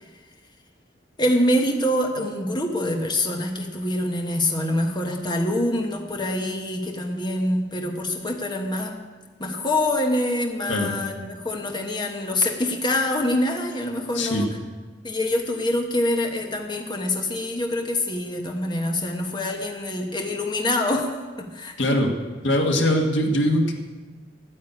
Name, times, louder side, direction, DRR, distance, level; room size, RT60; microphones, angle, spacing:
voice 1, 1.2-9.0 9.4-14.6 15.0-21.7, left 1 dB, 25° left, 3 dB, 1.2 m, -25 dB
voice 2, 14.2-14.5 21.8-22.1 22.4-23.7, left 1 dB, 85° left, 2 dB, 1.7 m, -21 dB
11.5 x 9.9 x 8.2 m, 1.3 s
head